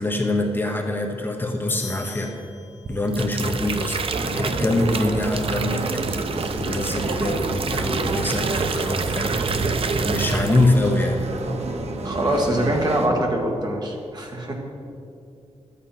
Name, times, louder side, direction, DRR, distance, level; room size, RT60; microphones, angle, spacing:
voice 1, 0.0-2.3 2.9-5.9 6.2-6.3 6.6-9.4 10.0-11.2, left 2 dB, 20° left, 2 dB, 1.0 m, -24 dB
sound 1, 1.7-3.3, left 6 dB, 65° left, 1.7 m, -38 dB
sound 2, 2.9-10.9 11.2-11.5, right 5 dB, 55° right, 0.6 m, -28 dB
sound 3, 4.1-13.1, right 2 dB, 70° right, 1.0 m, -29 dB
voice 2, 12.0-14.5, right 1 dB, 40° right, 0 dB, 1.7 m, -23 dB
12.0 x 8.5 x 5.8 m, 2.6 s
wide cardioid pair, 165°, 11 cm